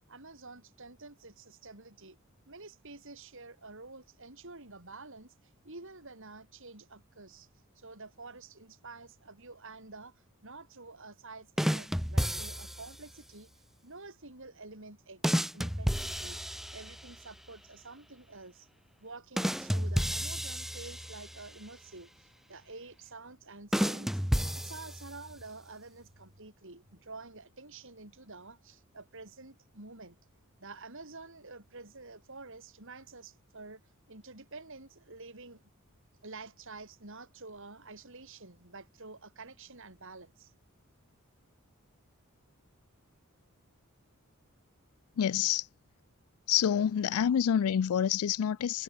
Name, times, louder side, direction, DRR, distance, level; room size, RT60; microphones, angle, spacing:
voice 1, 0.1-2.2 2.5-7.5 7.7-18.7 19.0-24.2 24.5-30.2 30.6-33.8 34.1-35.7 36.2-40.5, right 3 dB, 60° right, 5.6 m, -49 dB
sound 1, 11.6-13.0 15.2-17.2 19.4-21.5 23.7-25.3, equal, ahead, 1.7 m, -31 dB
voice 2, 45.2-45.6 46.5-48.8, left 9 dB, 80° left, 0.4 m, -27 dB
head